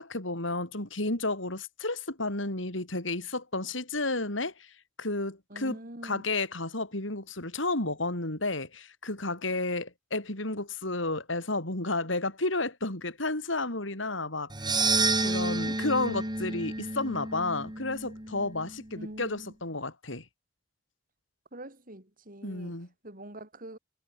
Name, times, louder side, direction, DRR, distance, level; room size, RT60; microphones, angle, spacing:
voice 1, 0.0-4.7 5.0-14.5 15.2-20.2 22.4-22.9, left 2 dB, 80° left, 5.8 m, -32 dB
voice 2, 5.5-6.3 19.0-19.5 21.5-22.8 23.0-23.8, right 1 dB, 45° right, 7.1 m, -44 dB
sound 1, 14.5-18.8, right 3 dB, 25° right, 7.1 m, -30 dB
head